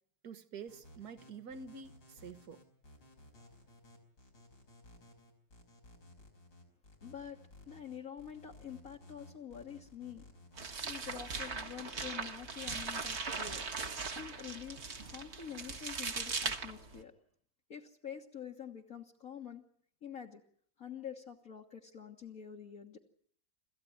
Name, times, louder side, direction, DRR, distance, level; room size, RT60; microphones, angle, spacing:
voice 1, 0.2-2.6 3.4-3.5, right 5 dB, 60° right, 1.8 m, -48 dB
sound 1, 0.7-11.3, left 2 dB, 90° left, 5.6 m, -57 dB
voice 2, 7.0-7.4 7.7-10.3 10.8-13.6 14.2-17.1 17.7-19.6 20.0-20.4 20.8-23.0, left 8 dB, 50° left, 1.9 m, -47 dB
sound 2, 10.6-17.0, right 4 dB, 40° right, 1.5 m, -39 dB
26.5 x 14.5 x 9.4 m
omnidirectional pair, 2.0 m